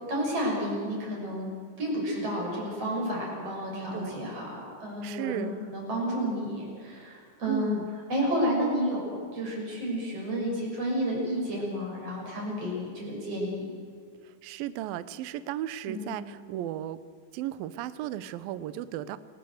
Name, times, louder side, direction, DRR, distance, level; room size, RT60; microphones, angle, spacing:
voice 1, 0.1-1.5 1.8-7.8 8.1-9.1 9.3-13.7 15.9-16.1, equal, 35° right, -2 dB, 7.8 m, -31 dB
voice 2, 5.0-5.5 7.5-7.9 14.2-17.0 17.3-19.2, right 12 dB, 75° right, 14 dB, 2.2 m, -35 dB
28.0 x 18.5 x 7.9 m, 2.1 s
omnidirectional pair, 5.1 m